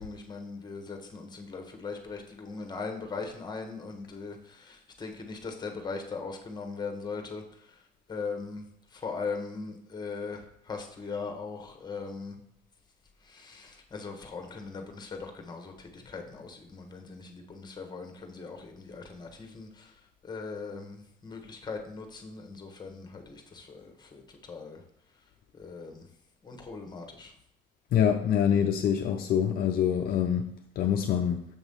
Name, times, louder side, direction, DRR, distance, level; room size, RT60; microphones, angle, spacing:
voice 1, 0.0-7.7 8.1-8.6 8.9-12.3 13.3-19.9 20.2-24.8 25.5-26.1 26.4-27.3, left 4 dB, 25° left, 4 dB, 1.2 m, -39 dB
voice 2, 27.9-30.5 30.8-31.4, left 8 dB, 60° left, 4 dB, 0.5 m, -25 dB
7.2 x 3.0 x 5.4 m, 0.73 s
cardioid pair, 110°, 17 cm